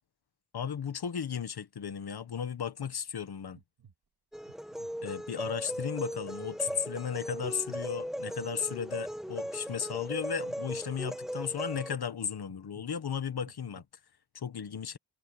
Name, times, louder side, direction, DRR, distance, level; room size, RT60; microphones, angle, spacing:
voice 1, 0.5-3.6 5.0-13.8 14.3-15.0, left 7 dB, 65° left, 1.5 m, -35 dB
sound 1, 2.6-2.9 3.5-3.9 4.5-4.9 5.4-5.9 6.4-6.8 7.4-7.8 8.4-8.8 9.4-9.8 10.5-10.8 11.5-11.8 12.5-12.8 13.4-13.8, right 8 dB, 65° right, 3.5 m, -56 dB
sound 2, 4.3-11.9, equal, ahead, 1.6 m, -38 dB
wide cardioid pair, 175°, 41 cm